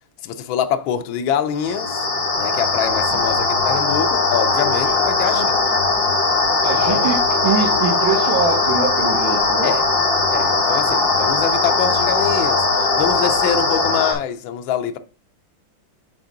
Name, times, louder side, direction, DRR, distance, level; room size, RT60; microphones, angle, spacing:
voice 1, 0.2-2.0 2.4-5.5 6.6-7.1 9.6-9.8 10.3-15.0, left 8 dB, 80° left, 1.5 m, -25 dB
sound 1, 1.6-14.1, left 3 dB, 60° left, 2.3 m, -19 dB
voice 2, 6.6-9.7, right 6 dB, 75° right, 2.2 m, -23 dB
7.7 x 3.6 x 5.8 m
omnidirectional pair, 2.2 m